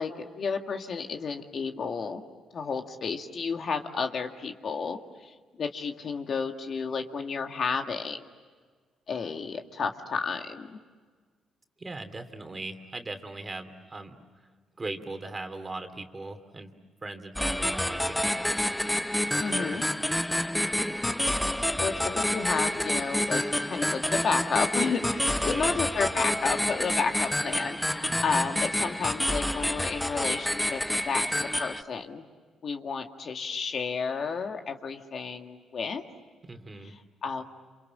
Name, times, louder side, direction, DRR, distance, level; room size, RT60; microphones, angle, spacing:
voice 1, 0.0-2.2 2.5-8.2 9.1-10.8 19.4-19.8 21.8-23.4 23.7-31.3 31.6-32.2 32.6-36.0 36.8-37.4, left 5 dB, 55° left, 5 dB, 1.9 m, -31 dB
voice 2, 11.8-14.2 14.8-16.7 17.0-18.5 19.3-19.8 25.5-25.8 28.1-28.5 36.5-37.0, right 2 dB, 25° right, 6 dB, 2.8 m, -39 dB
sound 1, 17.4-31.8, left 1 dB, 5° left, 0.8 m, -28 dB
28.5 x 27.5 x 7.5 m, 1.5 s
cardioid pair, 90°, 0 cm